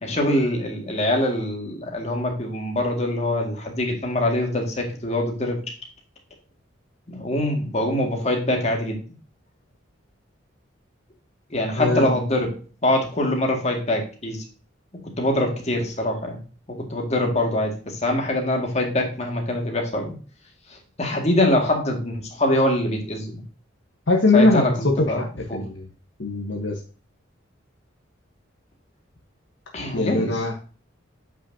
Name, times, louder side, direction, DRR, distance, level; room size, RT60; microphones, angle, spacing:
voice 1, 0.0-5.6 7.1-9.0 11.5-12.5 12.8-14.4 15.2-16.4 16.7-20.1 20.7-23.4 24.3-25.2 25.5-25.6 29.7-30.4, left 1 dB, 35° left, 1 dB, 2.0 m, -24 dB
voice 2, 11.8-12.2 24.1-25.3 25.5-25.9 26.2-26.8 29.9-30.6, left 2 dB, 65° left, 2 dB, 1.1 m, -21 dB
8.3 x 5.8 x 2.7 m, 0.37 s
head